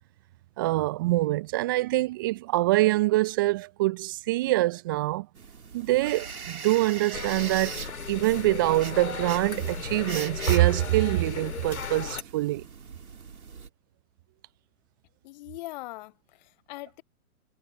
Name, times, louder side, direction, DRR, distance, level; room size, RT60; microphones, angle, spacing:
voice 1, 0.6-5.3 5.7-12.6, right 18 dB, 15° right, 0.4 m, -25 dB
sound 1, 5.4-13.7, right 6 dB, 75° right, 3.4 m, -41 dB
sound 2, 7.1-12.2, left 6 dB, 75° left, 2.6 m, -36 dB
voice 2, 15.2-17.0, left 19 dB, 30° left, 0.9 m, -41 dB
figure-of-eight pair, 120°, 43 cm